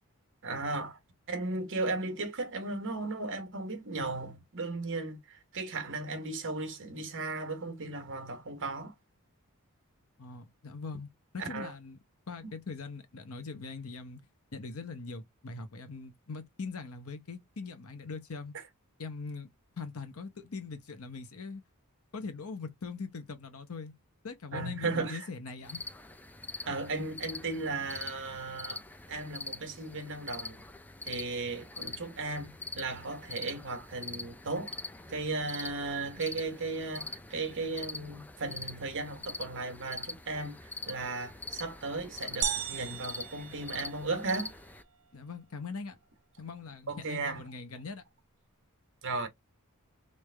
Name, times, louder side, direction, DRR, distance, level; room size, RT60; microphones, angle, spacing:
voice 1, 0.4-1.0 1.3-8.9 11.4-11.7 24.5-25.3 26.6-28.8 29.1-30.6 31.0-34.7 35.1-40.6 40.9-44.5 46.9-47.4 49.0-49.3, right 3 dB, 60° right, 1.1 m, -36 dB
voice 2, 10.2-11.1 11.3-12.0 12.3-14.2 14.5-18.6 19.0-19.5 19.8-21.6 22.1-23.9 24.2-25.8 45.1-46.0 46.4-48.0, left 4 dB, 70° left, 0.9 m, -41 dB
sound 1, 25.6-44.8, left 3 dB, 10° left, 0.4 m, -44 dB
sound 2, 42.4-44.4, right 9 dB, 85° right, 0.8 m, -36 dB
3.3 x 2.5 x 3.3 m
head